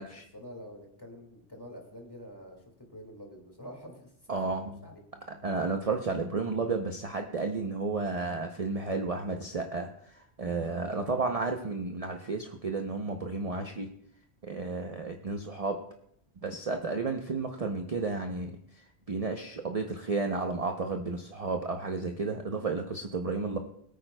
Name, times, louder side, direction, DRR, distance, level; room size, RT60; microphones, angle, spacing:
voice 1, 0.0-4.1 4.5-5.0, equal, 20° left, 0 dB, 2.0 m, -47 dB
voice 2, 4.3-4.8 5.3-13.9 14.4-15.8 16.4-23.6, right 3 dB, 40° right, 4 dB, 0.7 m, -32 dB
22.0 x 8.9 x 2.2 m, 0.69 s
omnidirectional pair, 1.1 m